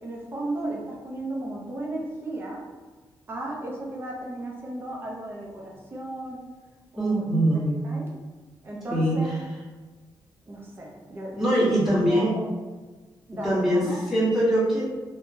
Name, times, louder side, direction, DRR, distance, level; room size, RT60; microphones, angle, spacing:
voice 1, 0.0-2.6 3.3-6.5 6.9-7.3 7.8-8.1 8.6-9.3 10.5-11.8 12.1-12.5 13.3-14.0, right 1 dB, 25° right, -2 dB, 0.6 m, -35 dB
voice 2, 7.0-7.8 8.9-9.2 11.4-12.3 13.4-13.8 14.1-14.9, right 1 dB, ahead, -11 dB, 1.3 m, -22 dB
3.4 x 2.2 x 2.7 m, 1.3 s
wide cardioid pair, 165°, 8 cm